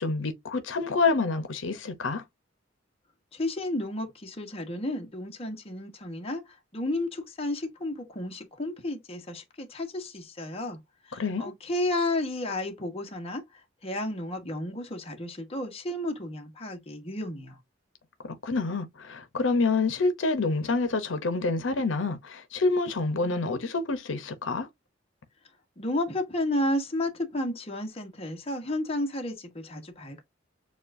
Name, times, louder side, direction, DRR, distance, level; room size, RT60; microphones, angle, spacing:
voice 1, 0.0-2.2 11.1-11.5 18.4-24.7, left 3 dB, 80° left, 0.8 m, -27 dB
voice 2, 3.3-6.4 6.7-10.8 11.1-13.4 13.8-17.6 25.8-30.2, left 1 dB, 30° left, 1.1 m, -32 dB
7.0 x 2.4 x 2.6 m
head